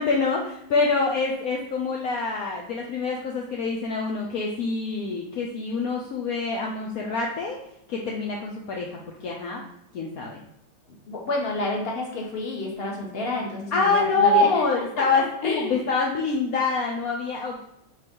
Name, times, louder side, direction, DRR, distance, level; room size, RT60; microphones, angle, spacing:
voice 1, 0.0-7.6 7.9-9.6 9.9-10.4 13.7-17.6, left 3 dB, 65° left, -1 dB, 0.9 m, -25 dB
voice 2, 11.1-14.6 15.0-15.8, left 2 dB, 35° left, -1 dB, 1.1 m, -29 dB
5.4 x 4.0 x 5.3 m, 0.76 s
omnidirectional pair, 2.3 m